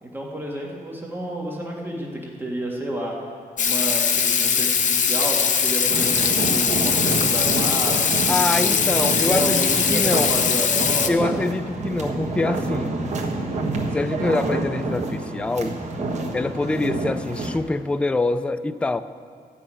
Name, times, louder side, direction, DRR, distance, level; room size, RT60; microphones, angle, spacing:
voice 1, 0.0-3.2 3.6-8.8 9.2-11.4, right 1 dB, 15° right, -3 dB, 1.8 m, -30 dB
Water tap faucet / Sink (filling or washing), 3.6-11.1, left 7 dB, 50° left, 0.8 m, -21 dB
sound 1, 5.9-17.6, right 2 dB, 45° right, 1.4 m, -28 dB
voice 2, 8.3-10.3 11.1-13.0 13.9-15.8 16.3-19.0, left 2 dB, 5° left, 11 dB, 0.3 m, -25 dB
13.5 x 6.3 x 9.0 m, 2.1 s
wide cardioid pair, 140°, 16 cm